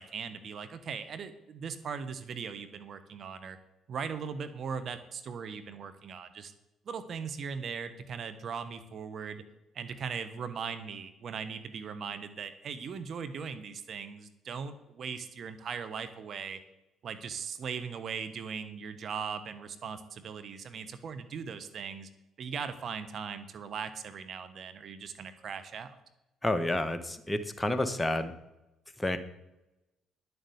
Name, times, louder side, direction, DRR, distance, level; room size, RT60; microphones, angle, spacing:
voice 1, 0.0-3.6 3.9-6.5 6.8-9.4 9.7-16.6 17.0-22.1 22.4-26.0, right 6 dB, 55° right, 11 dB, 1.3 m, -39 dB
voice 2, 26.4-28.3 29.0-29.2, left 1 dB, 15° left, 9 dB, 1.3 m, -30 dB
10.5 x 7.2 x 8.1 m, 0.94 s
supercardioid pair, 65°, 0 cm